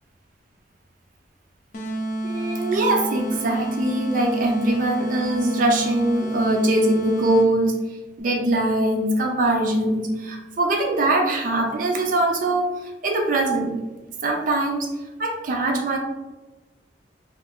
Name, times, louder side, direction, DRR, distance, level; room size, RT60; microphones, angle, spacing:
sound 1, 1.7-7.7, right 1 dB, 45° left, 0.5 m, -29 dB
voice 1, 2.2-7.8 8.2-12.7 13.0-13.8 14.2-14.9 15.2-16.0, right 1 dB, 50° right, 2 dB, 0.4 m, -22 dB
2.5 x 2.4 x 3.4 m, 1.1 s
head